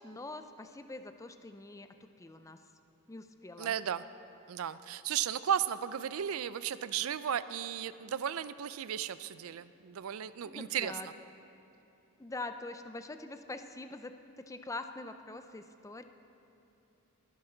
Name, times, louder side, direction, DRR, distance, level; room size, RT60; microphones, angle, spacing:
voice 1, 0.0-1.9 2.2-2.6 3.1-3.7 10.4-11.1 12.2-16.0, left 2 dB, 15° left, 8 dB, 0.4 m, -44 dB
voice 2, 3.6-4.0 4.5-11.1, right 9 dB, 70° right, 15 dB, 0.4 m, -35 dB
19.0 x 10.0 x 3.9 m, 2.9 s
head